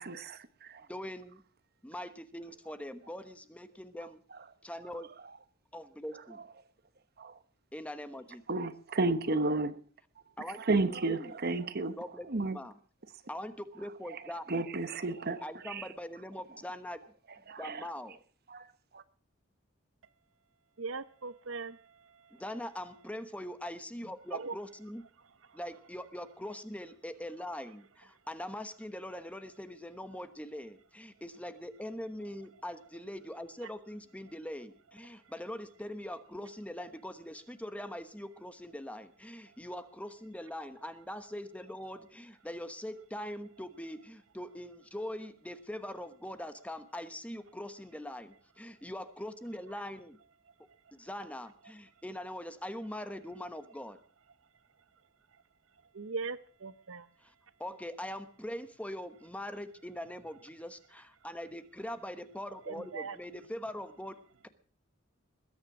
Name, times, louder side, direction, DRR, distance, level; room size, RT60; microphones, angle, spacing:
voice 1, 0.0-0.8 7.2-7.4 8.5-9.8 10.6-12.0 12.2-12.6 14.1-14.2 14.5-15.9 17.5-17.9 18.5-18.7 18.9-19.0, right 3 dB, 50° right, 1.1 m, -32 dB
voice 2, 0.9-1.4 1.8-4.2 4.6-5.1 5.7-6.4 7.7-8.4 10.4-10.6 11.0-11.3 12.0-12.8 13.3-14.7 15.4-17.0 17.6-18.2 22.3-25.0 25.5-50.2 50.9-54.0 57.2-57.3 57.6-64.5, left 1 dB, 5° left, 1.1 m, -42 dB
voice 3, 20.8-21.8 24.3-24.5 55.9-57.1 62.7-63.2, right 4 dB, 75° right, 0.8 m, -39 dB
21.0 x 9.8 x 6.1 m
head